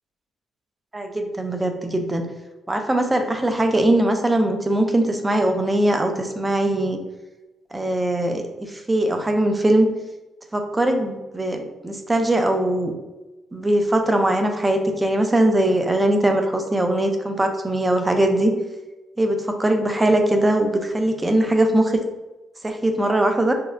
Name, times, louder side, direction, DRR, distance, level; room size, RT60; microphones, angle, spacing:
voice 1, 0.9-2.3 2.7-7.0 7.7-9.9 10.5-12.9 13.5-18.5 19.2-22.0 22.6-23.5, right 1 dB, 15° right, 5 dB, 0.4 m, -21 dB
3.5 x 2.0 x 2.4 m, 1.1 s
cardioid pair, 90°, 0 cm